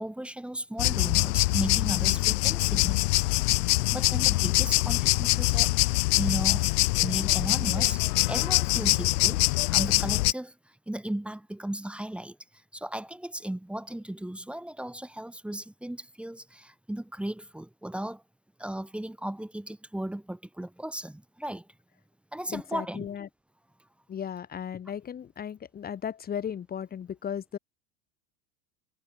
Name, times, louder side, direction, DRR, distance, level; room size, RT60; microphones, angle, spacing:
voice 1, 0.0-5.7 6.2-6.7 7.0-9.4 9.7-18.2 18.6-21.7 22.3-23.1, right 1 dB, ahead, 3.9 m, -36 dB
sound 1, 0.8-10.3, left 22 dB, 70° left, 1.0 m, -24 dB
voice 2, 22.5-23.3 24.1-27.6, left 8 dB, 20° left, 3.9 m, -36 dB
supercardioid pair, 175°, 48 cm